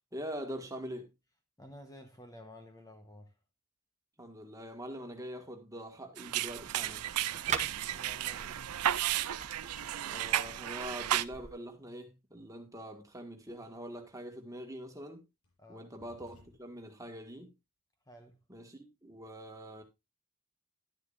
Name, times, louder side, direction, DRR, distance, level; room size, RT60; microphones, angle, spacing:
voice 1, 0.1-1.1 4.2-7.1 10.0-15.2 15.7-17.5 18.5-19.8, equal, 15° right, 1.7 m, -44 dB
voice 2, 1.6-3.3 7.9-8.8 15.6-15.9 18.1-18.4, left 1 dB, 15° left, 1.0 m, -52 dB
sound 1, 6.2-11.2, right 12 dB, 85° right, 0.5 m, -33 dB
sound 2, 6.5-11.5, right 6 dB, 30° right, 1.1 m, -43 dB
sound 3, 9.8-11.9 13.8-13.9 14.8-15.0 15.4-16.9, left 2 dB, 90° left, 7.1 m, -63 dB
11.5 x 10.5 x 2.5 m
head